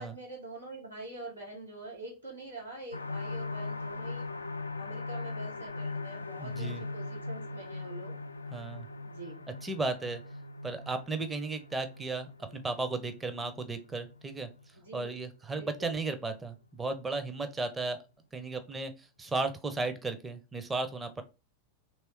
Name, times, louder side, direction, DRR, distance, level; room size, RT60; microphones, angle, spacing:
voice 1, 0.0-4.3 4.8-8.1 9.0-9.4 14.7-15.2 15.5-15.9, right 2 dB, 85° right, -3 dB, 1.8 m, -45 dB
sound 1, 2.9-16.4 16.9-17.0 17.3-17.4, left 3 dB, 80° left, 0.3 m, -40 dB
voice 2, 6.4-6.8 8.5-8.9 9.6-10.2 10.6-14.5 14.9-18.0 18.3-18.9 19.2-21.2, right 3 dB, 15° right, 8 dB, 0.6 m, -35 dB
3.2 x 3.1 x 4.5 m, 0.29 s
figure-of-eight pair, 90°, 0 cm